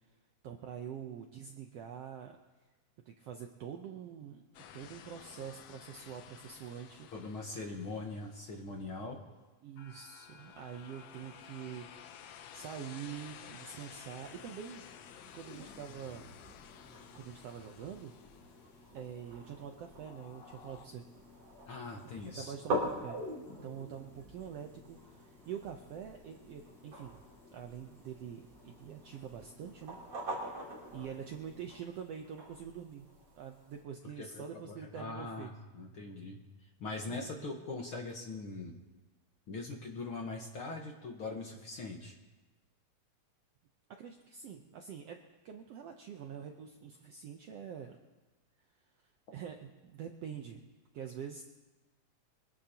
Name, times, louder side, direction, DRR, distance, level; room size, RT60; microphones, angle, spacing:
voice 1, 0.4-2.4 3.1-7.1 9.6-12.1 12.5-14.9 15.3-16.3 17.1-18.1 18.9-21.0 22.3-27.2 27.5-30.4 30.9-33.1 33.3-35.5 37.1-37.6 43.9-45.2 45.4-48.0 49.0-50.7 50.9-51.4, right 8 dB, 75° right, 3 dB, 1.5 m, -45 dB
sound 1, 4.5-9.0 9.8-19.4 20.0-20.9, left 9 dB, 70° left, 1.6 m, -54 dB
voice 2, 7.1-9.2 21.7-22.5 34.2-36.4 36.8-38.8 39.5-42.1, left 3 dB, 55° left, 1 dB, 1.6 m, -41 dB
sound 2, 14.2-31.7, left 3 dB, ahead, 4.0 m, -60 dB
sound 3, 15.4-33.8, right 1 dB, 50° right, 4.2 m, -45 dB
24.5 x 16.5 x 2.9 m, 1.2 s
omnidirectional pair, 3.7 m